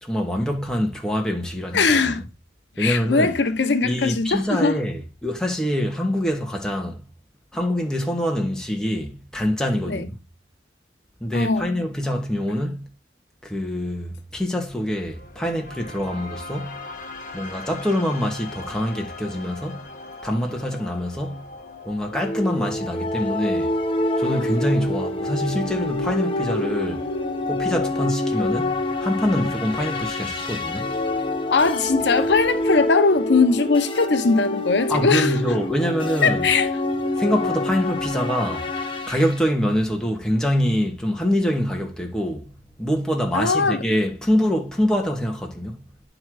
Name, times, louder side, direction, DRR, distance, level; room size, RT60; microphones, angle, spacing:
voice 1, 0.0-2.2 2.8-3.3 3.8-7.0 7.5-10.2 11.2-12.8 13.4-16.8 17.3-19.9 20.2-21.4 21.8-23.7 24.2-31.3 34.9-36.5 37.2-38.7 39.1-42.5 42.8-45.8, equal, 5° left, 1.4 m, -25 dB
voice 2, 1.7-2.2 2.8-4.8 9.9-10.0 11.3-11.7 31.5-35.4 36.2-36.7 43.3-43.8, left 4 dB, 75° left, 0.8 m, -20 dB
sound 1, 14.7-30.7, left 3 dB, 45° left, 1.3 m, -42 dB
sound 2, 22.1-39.4, left 2 dB, 30° left, 1.0 m, -26 dB
10.5 x 3.9 x 4.8 m
head